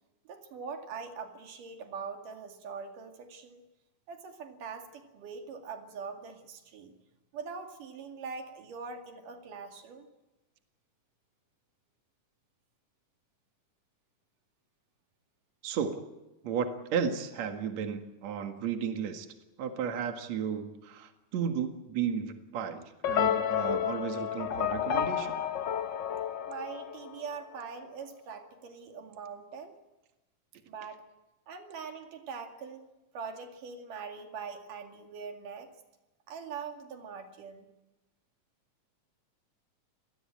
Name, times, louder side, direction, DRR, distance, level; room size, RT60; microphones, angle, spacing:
voice 1, 0.3-3.6 4.1-6.9 7.3-10.1 26.5-29.7 30.7-31.0 31.5-32.9 33.1-35.7 36.3-37.7, right 5 dB, 85° right, 5 dB, 3.9 m, -42 dB
voice 2, 15.6-16.0 16.4-19.3 19.6-25.4, right 7 dB, 60° right, 6 dB, 3.0 m, -34 dB
sound 1, 23.0-27.4, left 9 dB, 80° left, 1.0 m, -31 dB
27.0 x 20.5 x 8.7 m, 1.0 s
omnidirectional pair, 3.6 m